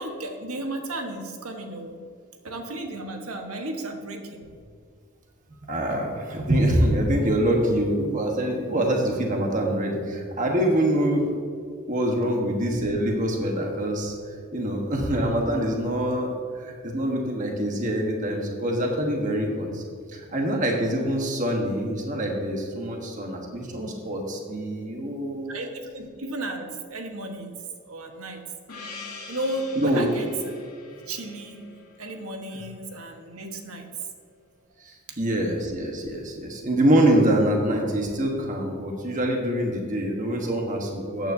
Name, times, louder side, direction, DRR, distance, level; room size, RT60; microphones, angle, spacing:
voice 1, 0.0-2.0 2.4-4.5 20.8-21.0 25.5-27.5 27.9-28.4 29.3-30.6 31.1-31.6 32.0-33.9 35.1-35.2, right 2 dB, 75° right, 4 dB, 1.3 m, -34 dB
voice 2, 5.7-11.3 11.9-19.8 20.1-25.5 29.7-30.1 34.8-41.3, right 1 dB, 35° right, 1 dB, 1.3 m, -25 dB
Gong, 28.7-33.5, left 4 dB, 85° left, 2.0 m, -44 dB
13.5 x 9.3 x 2.7 m, 2.3 s
head